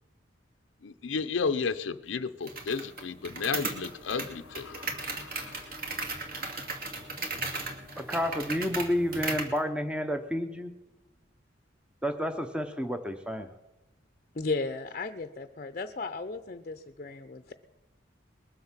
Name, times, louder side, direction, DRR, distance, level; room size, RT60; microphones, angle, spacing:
voice 1, 0.8-6.0, left 5 dB, 85° left, 0.6 m, -33 dB
sound 1, 2.5-9.6, right 3 dB, 50° right, 2.4 m, -36 dB
voice 2, 8.0-10.7 12.0-13.5, equal, 5° right, 0.7 m, -30 dB
voice 3, 14.3-17.5, left 3 dB, 40° left, 0.6 m, -35 dB
20.5 x 7.7 x 7.3 m
head